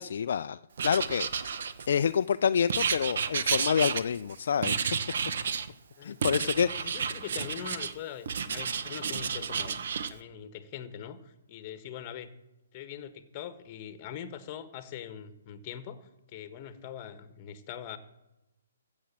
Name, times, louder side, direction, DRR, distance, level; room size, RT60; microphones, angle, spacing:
voice 1, 0.0-1.5 1.9-4.9 6.0-6.9, left 7 dB, 60° left, 11 dB, 0.4 m, -28 dB
Writing, 0.8-2.1 2.7-4.3 4.6-5.7 6.2-7.9 8.3-10.1, right 6 dB, 60° right, 1.0 m, -31 dB
voice 2, 6.4-9.8 10.1-12.3 12.7-18.0, left 9 dB, 30° left, 11 dB, 1.4 m, -42 dB
15.0 x 7.1 x 7.3 m, 0.99 s
hypercardioid pair, 140°, 0 cm